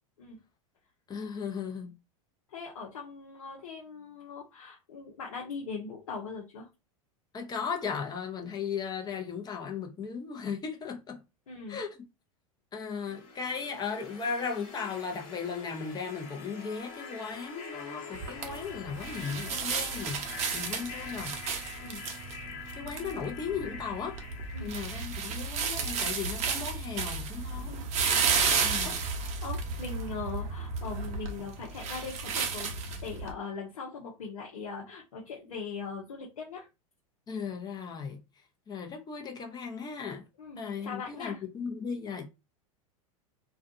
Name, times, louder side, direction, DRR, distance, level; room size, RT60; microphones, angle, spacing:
voice 1, 1.1-1.9 7.3-11.2 11.7-11.9 12.7-21.4 22.8-24.2 24.6-27.7 28.6-28.9 37.3-38.2 38.7-40.2 40.6-42.3, left 6 dB, 20° left, 0.8 m, -36 dB
voice 2, 2.5-6.7 11.5-11.8 21.8-22.0 24.5-24.7 27.7-27.9 28.8-32.7 33.0-36.7 40.4-41.4, left 5 dB, 70° left, 0.8 m, -40 dB
sound 1, 13.0-25.9, left 4 dB, 55° left, 1.2 m, -45 dB
sound 2, 18.1-33.3, right 5 dB, 40° right, 0.7 m, -33 dB
2.4 x 2.3 x 2.6 m
hypercardioid pair, 90°, 18 cm